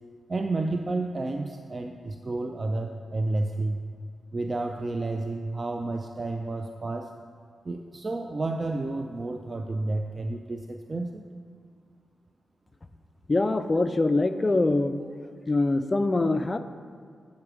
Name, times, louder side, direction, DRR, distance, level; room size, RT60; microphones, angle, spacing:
voice 1, 0.3-3.8 4.3-7.1 7.6-11.3, right 2 dB, 35° right, 5 dB, 0.4 m, -31 dB
voice 2, 13.3-15.0 15.5-16.6, left 2 dB, 30° left, 9 dB, 0.4 m, -24 dB
8.2 x 4.7 x 6.1 m, 2.2 s
cardioid pair, 80°, 0 cm